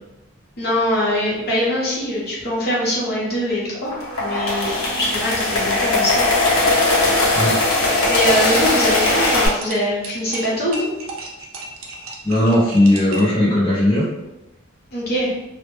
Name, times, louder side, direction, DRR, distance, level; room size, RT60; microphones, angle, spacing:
voice 1, 0.6-6.4 8.1-10.9 14.9-15.3, equal, 45° left, -6 dB, 0.8 m, -23 dB
sound 1, 3.9-9.5, left 2 dB, 85° left, 0.6 m, -19 dB
sound 2, 7.6-13.4, right 2 dB, 70° right, 0.4 m, -35 dB
voice 2, 12.2-14.0, left 1 dB, 20° left, -10 dB, 0.5 m, -17 dB
2.0 x 2.0 x 3.0 m, 0.95 s
head